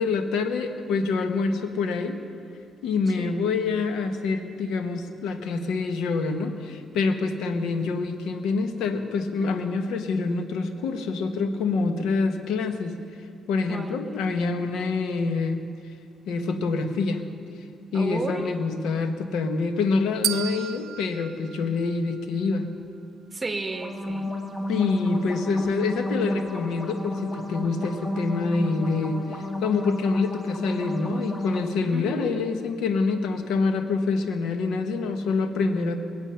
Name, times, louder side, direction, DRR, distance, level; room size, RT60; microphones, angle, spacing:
voice 1, 0.0-2.2 2.8-12.9 13.5-15.6 16.3-17.2 17.9-22.7 24.7-36.0, left 4 dB, 85° left, 7 dB, 1.1 m, -26 dB
voice 2, 3.2-3.5 13.7-14.2 17.9-18.5 23.3-24.3 31.9-32.4, right 2 dB, 25° right, 7 dB, 1.2 m, -33 dB
sound 1, 20.2-22.5, right 11 dB, 75° right, 0.4 m, -33 dB
sound 2, 23.7-31.6, left 1 dB, 20° left, 1.6 m, -31 dB
22.5 x 8.0 x 5.6 m, 2.5 s
cardioid pair, 90°, 0 cm